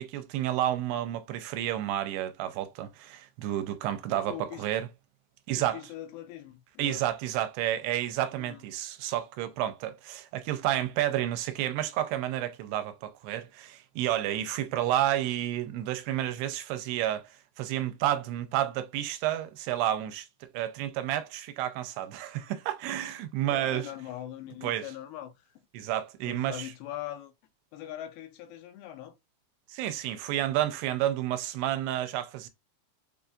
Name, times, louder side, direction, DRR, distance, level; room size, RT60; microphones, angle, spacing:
voice 1, 0.0-4.9 5.5-5.8 6.8-23.9 24.6-24.9 25.7-26.7 29.7-32.5, right 12 dB, 85° right, 2.6 m, -30 dB
voice 2, 4.1-4.7 5.6-7.0 8.4-8.6 23.5-25.5 26.2-27.3 27.7-29.2, left 12 dB, 85° left, 2.6 m, -41 dB
7.0 x 2.6 x 2.3 m
omnidirectional pair, 4.7 m